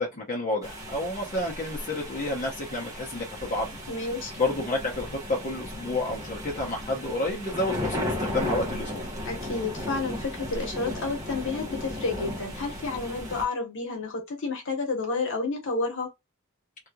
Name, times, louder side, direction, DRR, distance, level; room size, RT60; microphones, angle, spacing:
voice 1, 0.0-3.8 4.4-9.0, left 2 dB, 35° left, 0.9 m, -30 dB
sound 1, 0.6-13.4, left 1 dB, 15° right, 1.1 m, -35 dB
voice 2, 3.9-4.3 9.2-16.1, left 3 dB, 60° left, 1.2 m, -30 dB
3.2 x 2.8 x 2.4 m
head